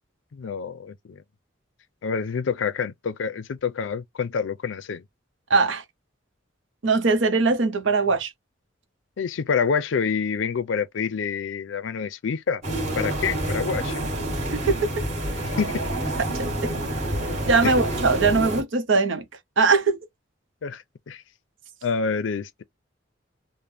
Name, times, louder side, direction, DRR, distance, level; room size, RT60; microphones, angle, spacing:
voice 1, 0.3-1.2 2.0-5.0 9.2-12.6 13.0-14.0 15.4-15.8 17.6-17.7 20.6-21.2 21.8-22.6, left 6 dB, 75° left, 0.4 m, -27 dB
voice 2, 5.5-5.8 6.8-8.3 14.5-14.6 16.4-16.5 17.5-19.2 19.6-20.0, right 4 dB, 80° right, 0.8 m, -20 dB
sound 1, 12.6-18.6, right 1 dB, 35° right, 1.6 m, -28 dB
3.4 x 2.1 x 2.6 m
head